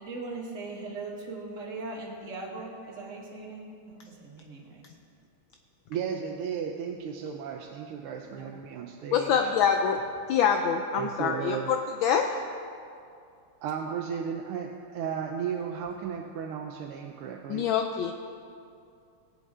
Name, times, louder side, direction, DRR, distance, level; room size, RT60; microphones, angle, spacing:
voice 1, 0.0-4.9 8.2-8.5, right 3 dB, 35° right, -1 dB, 1.9 m, -40 dB
voice 2, 5.9-9.6 11.0-11.7 13.6-17.7, right 7 dB, 85° right, 2 dB, 1.6 m, -34 dB
voice 3, 9.1-10.0 10.3-11.8 12.0-12.4 17.5-18.1, left 7 dB, 75° left, 4 dB, 1.3 m, -25 dB
22.0 x 7.8 x 3.7 m, 2.4 s
omnidirectional pair, 2.4 m